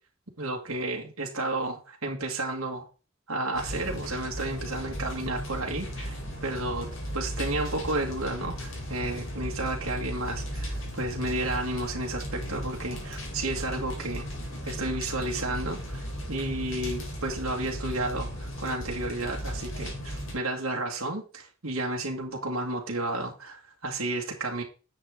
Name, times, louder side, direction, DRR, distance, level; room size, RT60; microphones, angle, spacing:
voice 1, 0.4-2.9 3.3-6.9 7.1-14.2 14.7-24.6, right 2 dB, 80° right, 0 dB, 2.0 m, -32 dB
sound 1, 3.5-20.3, equal, 70° left, 3.8 m, -36 dB
10.5 x 7.3 x 3.8 m, 0.34 s
head